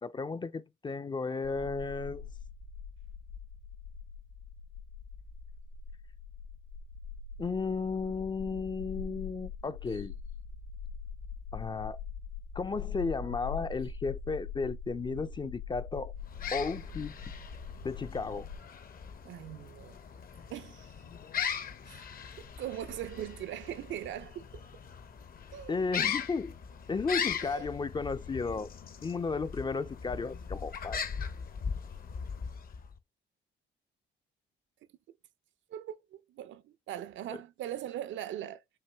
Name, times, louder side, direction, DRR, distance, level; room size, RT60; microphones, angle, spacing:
voice 1, 0.0-2.3 7.4-10.1 11.5-12.0 12.6-16.1 16.5-17.1 17.8-18.5 25.7-26.5 26.9-28.7 29.0-31.0, left 4 dB, 25° left, 0.4 m, -34 dB
sound 1, 1.4-18.6, left 6 dB, 70° left, 1.5 m, -43 dB
sound 2, 16.2-33.0, left 7 dB, 45° left, 0.8 m, -39 dB
voice 2, 19.2-20.0 20.5-20.9 21.9-22.0 22.4-24.6 25.5-25.8 27.4-27.7 35.7-38.6, right 11 dB, 70° right, 0.5 m, -40 dB
5.6 x 2.7 x 3.3 m
cardioid pair, 90°, 20 cm